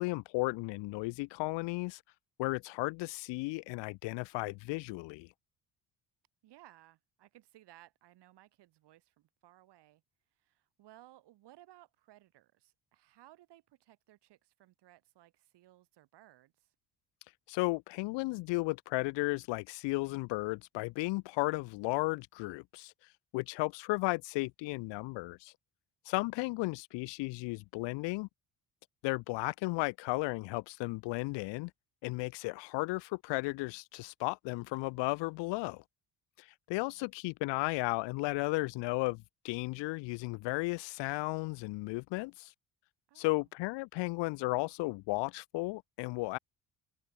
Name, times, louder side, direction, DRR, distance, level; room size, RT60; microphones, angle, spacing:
voice 1, 0.0-2.0 2.4-5.3 17.5-22.9 23.3-25.5 26.1-28.3 29.0-31.7 32.0-35.8 36.7-42.5 43.2-46.4, left 24 dB, 85° left, 0.5 m, -34 dB
voice 2, 6.4-10.0 10.4-16.7 36.7-37.1 43.1-43.5, right 15 dB, 70° right, 4.2 m, -60 dB
cardioid pair, 135°, 42 cm